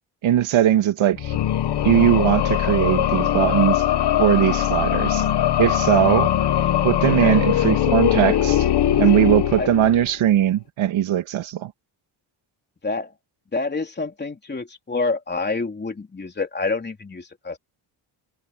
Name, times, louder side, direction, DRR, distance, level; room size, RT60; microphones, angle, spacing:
voice 1, 0.2-1.4 1.8-3.8 4.2-5.2 5.6-6.3 6.8-8.7 9.0-11.7, right 11 dB, 75° right, 2.6 m, -19 dB
sound 1, 1.1-10.2, left 11 dB, 55° left, 1.5 m, -21 dB
voice 2, 5.9-6.2 7.0-7.4 9.2-9.3 9.6-9.7 12.8-13.1 13.5-17.6, left 3 dB, 20° left, 3.6 m, -27 dB
cardioid pair, 130°, 48 cm